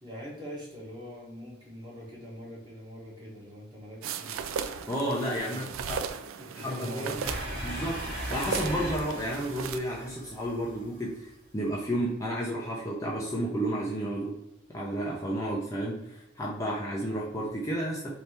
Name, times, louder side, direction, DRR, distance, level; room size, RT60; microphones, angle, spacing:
voice 1, 0.0-4.3 5.4-5.8 6.4-7.3, equal, 20° right, -4 dB, 1.3 m, -43 dB
sound 1, 4.0-9.8, right 7 dB, 90° right, 0.3 m, -37 dB
voice 2, 4.9-6.1 6.5-7.3 7.6-11.3 11.5-14.4 14.7-18.1, right 1 dB, 15° left, -4 dB, 0.5 m, -32 dB
sound 2, 7.2-11.1, equal, 50° right, 1.4 m, -38 dB
3.4 x 2.7 x 4.3 m, 0.83 s
head